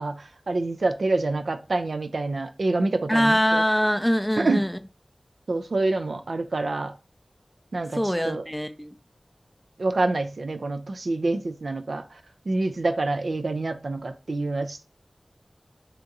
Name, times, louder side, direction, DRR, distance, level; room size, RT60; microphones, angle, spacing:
voice 1, 0.0-3.6 4.4-4.6 5.5-6.9 7.7-8.5 9.8-12.0 12.5-14.8, right 2 dB, 85° right, 0.4 m, -27 dB
voice 2, 3.1-4.8 7.9-8.9, equal, 5° left, 0.4 m, -23 dB
2.9 x 2.6 x 3.6 m
wide cardioid pair, 50°, 0 cm